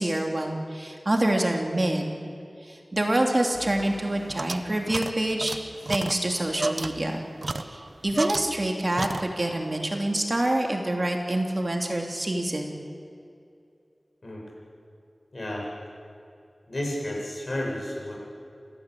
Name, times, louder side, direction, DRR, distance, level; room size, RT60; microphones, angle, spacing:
voice 1, 0.0-2.1 2.7-5.6 5.9-7.3 7.7-12.7, right 1 dB, 40° right, 2 dB, 2.9 m, -26 dB
sound 1, 3.5-8.7 9.0-9.6, right 2 dB, 65° right, 1.1 m, -34 dB
voice 2, 15.3-15.7 16.7-18.2, left 1 dB, 55° left, -2 dB, 7.9 m, -31 dB
28.5 x 15.5 x 8.4 m, 2.5 s
wide cardioid pair, 70°, 0 cm